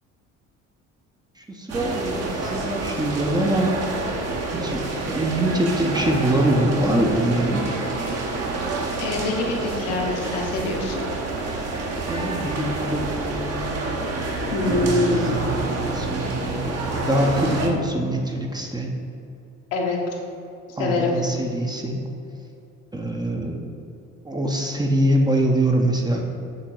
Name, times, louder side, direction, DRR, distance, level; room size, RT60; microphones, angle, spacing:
voice 1, 1.4-3.8 4.2-4.3 4.6-7.6 12.1-13.6 14.4-14.6 15.1-18.9 20.8-22.0 22.9-23.6 24.2-26.2, right 1 dB, 10° right, 1 dB, 0.6 m, -24 dB
sound 1, 1.7-17.7, right 3 dB, 40° right, 1.0 m, -27 dB
voice 2, 9.0-11.0 14.5-15.4 19.7-20.0 20.8-21.2, left 2 dB, 65° left, -1 dB, 1.0 m, -24 dB
6.6 x 3.7 x 4.4 m, 2.6 s
figure-of-eight pair, 50°, 39 cm